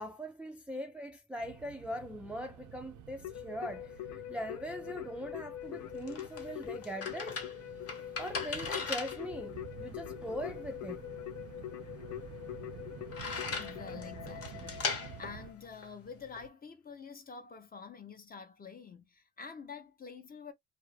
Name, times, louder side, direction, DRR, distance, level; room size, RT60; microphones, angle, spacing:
voice 1, 0.0-7.4 8.2-11.0, equal, 5° right, 0.4 m, -41 dB
sound 1, 1.4-15.5, right 9 dB, 80° right, 0.5 m, -51 dB
Keyboard (musical), 3.2-15.7, left 13 dB, 70° left, 0.6 m, -44 dB
sound 2, 5.6-16.5, left 4 dB, 50° left, 1.0 m, -41 dB
voice 2, 13.4-20.5, left 5 dB, 30° left, 0.7 m, -48 dB
2.4 x 2.0 x 3.0 m
cardioid pair, 90°, 30 cm